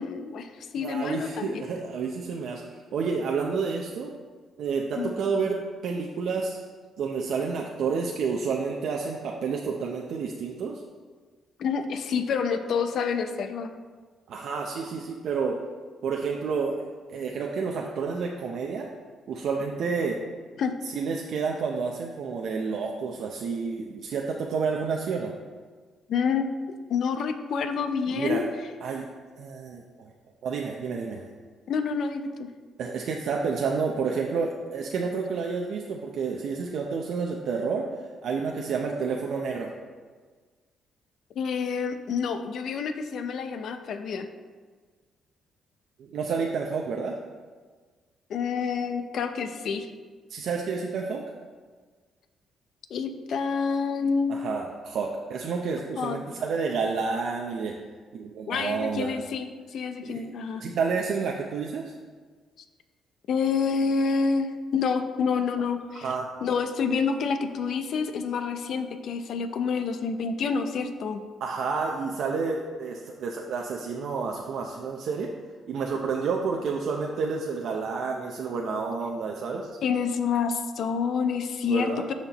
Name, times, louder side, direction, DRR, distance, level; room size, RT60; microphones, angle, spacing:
voice 1, 0.0-1.6 5.0-5.1 11.6-13.7 20.6-20.7 26.1-26.5 26.9-28.4 31.7-32.5 41.4-44.3 48.3-49.9 52.9-54.4 56.0-56.2 58.5-60.6 63.3-66.1 66.4-71.2 79.8-82.1, left 5 dB, 65° left, 8 dB, 0.6 m, -28 dB
voice 2, 0.8-4.1 4.6-6.6 7.0-10.8 14.3-15.6 16.0-18.9 19.3-20.2 20.9-25.3 28.1-28.5 28.8-29.1 29.4-30.1 30.4-31.3 32.8-39.7 46.0-47.2 50.3-51.2 54.3-57.7 58.1-59.1 60.0-60.2 60.6-61.9 66.0-66.3 71.4-75.3 75.7-79.7 81.7-82.1, right 5 dB, 70° right, 0 dB, 0.6 m, -30 dB
13.0 x 4.4 x 3.0 m, 1.5 s
cardioid pair, 90°, 0 cm